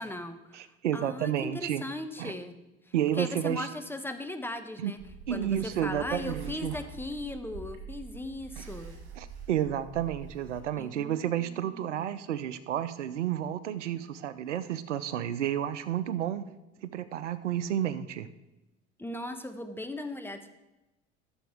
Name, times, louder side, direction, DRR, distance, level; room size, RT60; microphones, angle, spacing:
voice 1, 0.0-0.7 0.9-2.5 2.9-5.0 5.3-8.9 10.8-12.0 19.0-20.5, left 1 dB, 5° left, 7 dB, 1.0 m, -38 dB
voice 2, 0.5-1.8 2.2-2.3 2.9-3.7 4.8-4.9 5.3-6.7 8.6-8.7 9.2-16.5 16.8-18.3, right 10 dB, 90° right, 15 dB, 0.6 m, -31 dB
sound 1, 5.0-10.6, right 5 dB, 60° right, 2.6 m, -45 dB
14.0 x 7.0 x 3.4 m, 1.0 s
hypercardioid pair, 70°, 35 cm